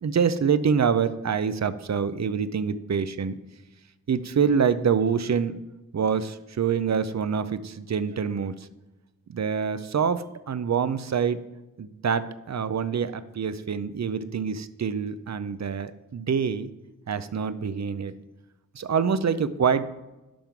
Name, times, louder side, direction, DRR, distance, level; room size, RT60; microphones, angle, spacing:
voice 1, 0.0-3.4 4.1-5.6 5.9-8.7 9.3-11.4 11.8-16.7 17.1-18.1 18.7-19.8, right 6 dB, 50° right, 14 dB, 0.5 m, -26 dB
10.0 x 3.6 x 5.9 m, 1.1 s
cardioid pair, 40°, 34 cm